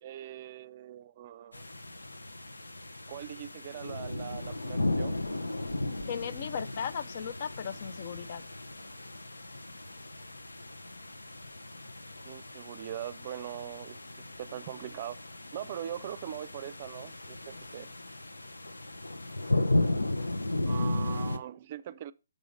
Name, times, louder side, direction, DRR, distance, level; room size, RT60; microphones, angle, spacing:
voice 1, 0.0-1.6 3.1-5.1 12.2-15.2 15.5-17.9 20.6-22.1, right 11 dB, 40° right, 0.4 m, -41 dB
sound 1, 1.5-21.4, left 2 dB, 85° left, 0.7 m, -35 dB
voice 2, 6.1-8.4, left 7 dB, 45° left, 0.5 m, -36 dB
6.4 x 5.0 x 5.0 m
figure-of-eight pair, 140°, 0 cm